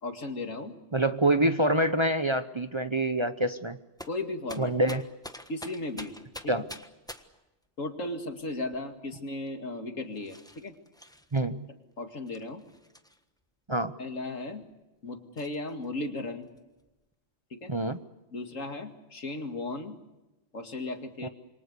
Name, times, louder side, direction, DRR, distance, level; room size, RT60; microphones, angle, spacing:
voice 1, 0.0-0.7 4.1-4.7 5.5-6.1 6.4-6.7 7.8-10.7 12.0-12.6 14.0-14.6 15.0-16.5 17.5-17.7 18.3-20.0 20.5-21.3, left 2 dB, 85° left, 6 dB, 2.6 m, -36 dB
voice 2, 0.9-3.8 4.6-5.0 6.5-6.6 11.3-11.7 13.7-13.9 17.7-18.0 21.2-21.3, right 1 dB, 25° right, 10 dB, 0.8 m, -26 dB
sound 1, 4.0-7.5 8.3-9.1 9.5-9.6 10.1-11.4 12.3-13.4 14.1-14.2 14.6-14.7 15.4-15.9 16.2-17.1, equal, 5° left, 1.3 m, -47 dB
27.5 x 24.0 x 6.8 m, 1.0 s
omnidirectional pair, 1.3 m